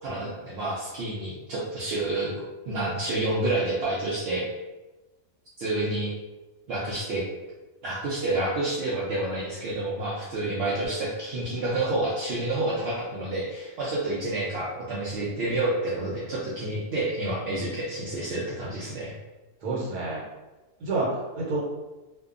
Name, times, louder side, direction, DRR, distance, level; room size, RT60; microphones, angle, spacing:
voice 1, 0.0-2.3 2.7-4.5 5.6-6.1 6.7-7.2 7.8-19.1, right 2 dB, 70° right, -7 dB, 0.6 m, -29 dB
voice 2, 19.6-20.2 20.8-21.6, right 3 dB, 85° right, -5 dB, 1.2 m, -29 dB
2.6 x 2.2 x 2.4 m, 1.1 s
omnidirectional pair, 1.6 m